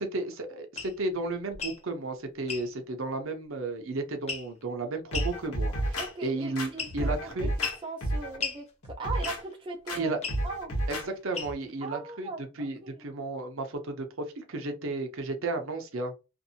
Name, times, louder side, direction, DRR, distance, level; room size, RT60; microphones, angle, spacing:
voice 1, 0.0-7.5 9.9-10.2 10.9-16.1, right 2 dB, 65° right, 0.7 m, -33 dB
sound 1, 0.8-0.9 1.5-1.8 2.5-2.7 4.3-4.6 5.1-5.3 6.0-6.3 6.8-7.1 7.6-7.8 8.4-8.6 9.2-9.5 10.2-10.4 11.3-11.7, left 5 dB, 30° left, 0.6 m, -35 dB
sound 2, 5.1-6.1 6.6-7.7 8.0-8.4 8.8-9.4 9.9-10.0 10.3-11.1 11.4-11.5, right 1 dB, 90° left, 1.1 m, -31 dB
voice 2, 6.0-10.1 10.4-10.7 11.8-12.9, right 3 dB, 20° right, 0.3 m, -39 dB
2.6 x 2.5 x 2.7 m
head